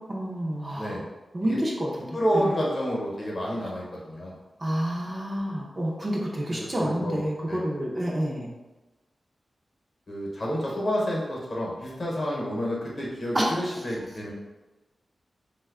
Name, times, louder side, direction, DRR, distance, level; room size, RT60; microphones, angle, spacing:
voice 1, 0.1-1.0 1.3-2.2 4.6-8.5 13.3-13.5, equal, 25° right, -3 dB, 0.5 m, -28 dB
voice 2, 2.1-4.4 6.8-7.2 7.5-7.6 10.1-14.3, equal, 40° left, -3 dB, 0.8 m, -29 dB
3.2 x 2.2 x 3.5 m, 1.1 s
wide cardioid pair, 165°, 0 cm